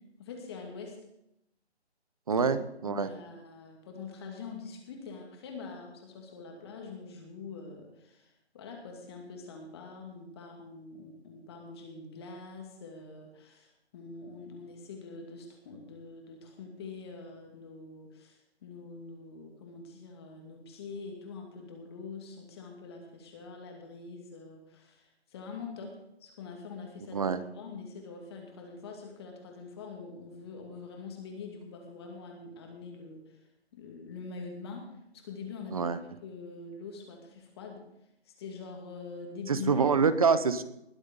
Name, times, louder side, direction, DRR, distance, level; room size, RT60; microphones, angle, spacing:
voice 1, 0.2-1.0 2.4-2.5 2.8-26.0 26.2-33.4 33.7-34.8 35.1-35.9 36.2-37.8 38.3-39.8, left 4 dB, 25° left, 2 dB, 2.4 m, -44 dB
voice 2, 2.3-3.1 27.1-27.4 35.7-36.0 39.5-40.6, right 5 dB, 35° right, 14 dB, 0.8 m, -26 dB
20.5 x 8.0 x 5.4 m, 0.82 s
figure-of-eight pair, 160°, 33 cm